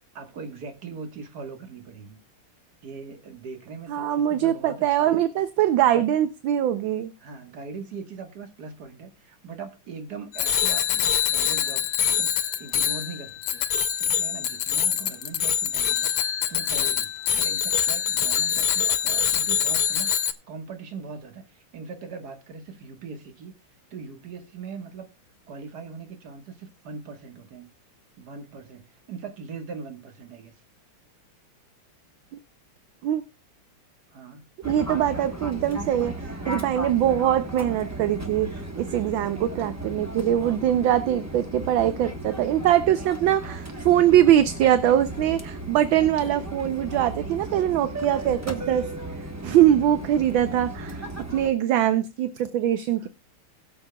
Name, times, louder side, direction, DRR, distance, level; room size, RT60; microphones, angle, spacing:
voice 1, 0.0-2.2 2.8-5.2 5.8-6.0 7.2-13.7 14.0-23.5 23.9-25.1 25.5-27.7 28.2-30.6 34.1-34.4 39.1-39.5 51.7-52.0 53.0-53.1, right 4 dB, 50° right, 1.9 m, -40 dB
voice 2, 3.9-7.1 33.0-33.2 34.6-36.1 36.5-38.5 38.8-48.9 49.4-51.0 51.3-53.1, right 11 dB, 70° right, 1.4 m, -22 dB
Bicycle bell, 10.3-20.3, left 9 dB, 80° left, 1.7 m, -24 dB
Fixed-wing aircraft airplane, 34.6-51.5, right 1 dB, 15° right, 0.5 m, -35 dB
20.5 x 7.1 x 2.2 m
omnidirectional pair, 2.3 m